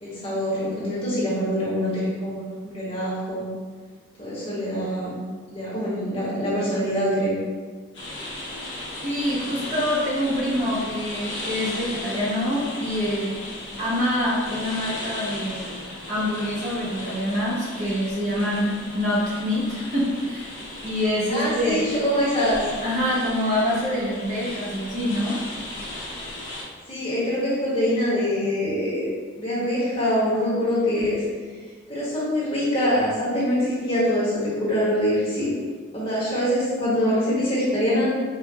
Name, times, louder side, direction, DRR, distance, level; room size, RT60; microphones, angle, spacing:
voice 1, 0.0-3.5 4.2-5.1 5.5-7.3 21.3-22.6 26.9-29.1 29.4-31.2 31.9-35.5 35.9-38.1, equal, 30° left, -9 dB, 1.5 m, -24 dB
sound 1, 7.9-26.6, left 1 dB, 60° left, 1.1 m, -36 dB
voice 2, 9.0-13.3 13.8-15.7 16.1-20.6 20.8-21.9 22.8-25.4, equal, 35° right, -6 dB, 0.8 m, -25 dB
4.7 x 2.5 x 3.4 m, 1.5 s
head